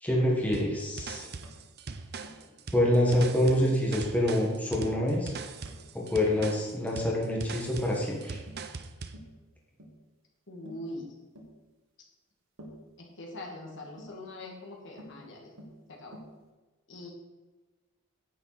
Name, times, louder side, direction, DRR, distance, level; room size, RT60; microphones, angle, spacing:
voice 1, 0.0-1.3 2.7-5.3 5.9-8.4, left 1 dB, 5° left, -3 dB, 1.6 m, -26 dB
sound 1, 0.5-9.2, right 4 dB, 45° right, 0.7 m, -41 dB
Tap, 1.4-1.6 2.2-2.4 3.1-3.4 3.6-3.9 4.3-4.5 4.9-5.1 5.7-5.9 6.3-6.6 7.0-7.2 7.8-8.1 8.5-8.7 9.1-9.4 9.8-10.0 10.7-10.9 11.4-11.6 12.6-12.9 14.0-14.2 15.0-15.2 15.6-15.8 16.1-16.4, equal, 60° right, 1.7 m, -49 dB
voice 2, 10.5-11.1 13.0-15.5 15.9-16.2 16.9-17.1, left 1 dB, 55° left, -1 dB, 2.2 m, -42 dB
10.0 x 8.8 x 4.2 m, 1.2 s
head